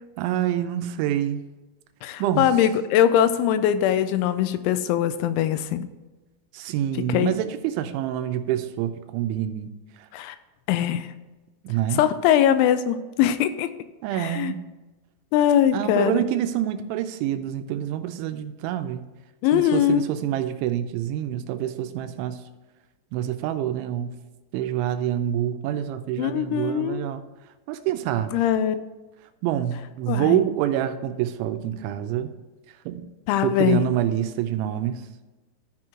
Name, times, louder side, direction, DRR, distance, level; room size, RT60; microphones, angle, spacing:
voice 1, 0.2-1.4 2.2-2.5 6.5-9.7 11.6-12.0 14.0-14.6 15.7-19.1 19.5-22.4 23.1-24.1 24.5-27.2 27.7-28.4 29.4-32.3 32.9-33.1 33.4-35.0, right 11 dB, 85° right, 8 dB, 3.0 m, -26 dB
voice 2, 2.0-5.9 7.1-7.3 10.1-10.4 10.7-11.1 12.0-13.7 14.2-14.5 15.3-16.2 19.4-20.0 26.2-27.0 28.3-28.8 30.1-30.4 33.3-33.9, left 10 dB, 85° left, 11 dB, 2.9 m, -21 dB
13.5 x 4.5 x 3.7 m, 1.2 s
omnidirectional pair, 5.3 m